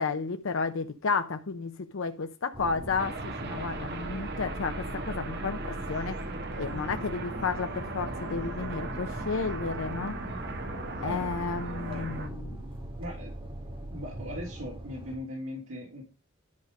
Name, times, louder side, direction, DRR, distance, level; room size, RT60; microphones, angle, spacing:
voice 1, 0.0-6.2 6.6-10.2 11.0-12.6, left 4 dB, 70° left, 0.6 m, -32 dB
sound 1, 2.5-15.2, right 1 dB, 25° right, 2.2 m, -40 dB
sound 2, 3.0-12.3, right 3 dB, 55° right, 1.4 m, -39 dB
voice 2, 11.0-11.3 11.8-12.1 13.0-13.5 13.9-16.0, left 1 dB, 85° right, 3.0 m, -39 dB
10.5 x 4.9 x 5.2 m
head